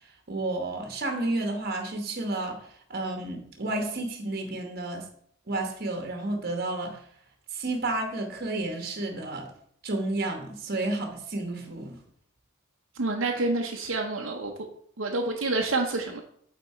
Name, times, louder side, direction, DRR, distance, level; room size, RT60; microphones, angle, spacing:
voice 1, 0.3-5.1 5.5-7.0 7.5-9.5 9.8-12.0, right 2 dB, 50° right, 1.1 m, -31 dB
voice 2, 12.9-14.5 15.0-16.2, right 2 dB, 65° right, 0.8 m, -28 dB
8.4 x 4.0 x 4.3 m
head